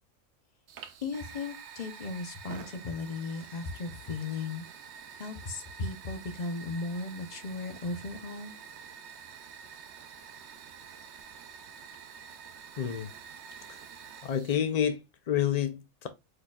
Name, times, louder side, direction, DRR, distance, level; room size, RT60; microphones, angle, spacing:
Fire, 0.7-14.6, right 7 dB, 60° right, 0.9 m, -48 dB
voice 1, 1.0-4.6 5.2-8.5, left 3 dB, 40° left, 0.7 m, -36 dB
voice 2, 12.8-13.1 13.7-13.8 14.2-16.1, left 9 dB, 90° left, 0.3 m, -29 dB
5.1 x 4.2 x 2.3 m
omnidirectional pair, 1.5 m